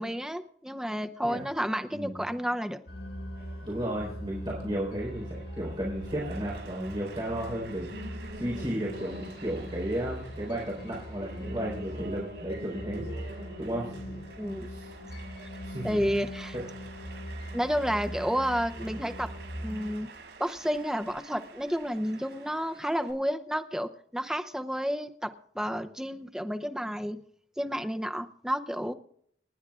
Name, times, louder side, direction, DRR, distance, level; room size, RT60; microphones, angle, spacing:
voice 1, 0.0-2.8 14.4-14.7 15.8-16.5 17.5-19.3 19.6-20.1 20.4-27.2 27.6-28.9, equal, 5° right, 7 dB, 0.6 m, -31 dB
voice 2, 1.9-2.2 3.6-13.9 14.7-14.9 15.6-16.0 16.5-16.6, right 1 dB, 30° right, -5 dB, 4.2 m, -34 dB
sound 1, 2.9-20.0, equal, 70° left, 4.7 m, -41 dB
Applause, 3.4-23.1, right 2 dB, 90° right, 6.4 m, -47 dB
29.0 x 10.0 x 2.4 m, 0.66 s
head